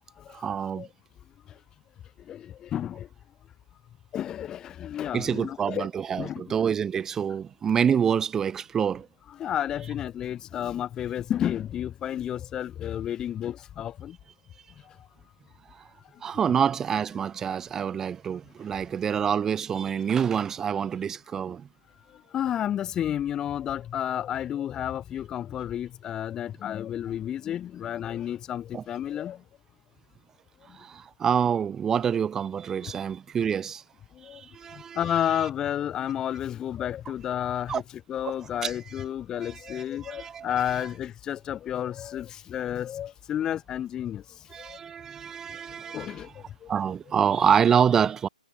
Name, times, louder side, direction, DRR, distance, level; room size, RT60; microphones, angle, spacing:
voice 1, 0.3-0.9 5.1-9.1 15.7-15.8 16.2-21.7 28.7-28.8 30.7-33.8 34.3-35.5 37.7-37.8 38.2-38.3 38.6-38.8 39.4-40.5 44.5-46.3 46.7-48.3, right 7 dB, 10° right, 1.4 m, -27 dB
voice 2, 2.3-3.1 4.1-5.9 6.2-6.5 9.4-14.2 22.3-29.4 32.8-32.9 34.2-34.4 35.0-37.8 38.1-44.2 44.6-44.8 45.9-46.3, left 10 dB, 15° left, 2.2 m, -31 dB
hypercardioid pair, 145°, 4 cm